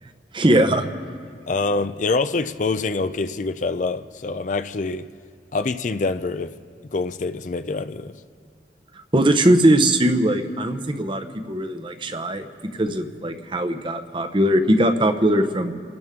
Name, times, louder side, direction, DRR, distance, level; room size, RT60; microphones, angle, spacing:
voice 1, 0.3-0.9 9.1-15.7, right 1 dB, 25° right, 8 dB, 0.8 m, -20 dB
voice 2, 1.5-5.1 5.5-6.5 6.9-8.1, left 3 dB, 45° left, 10 dB, 0.4 m, -25 dB
29.5 x 12.0 x 3.7 m, 2.4 s
head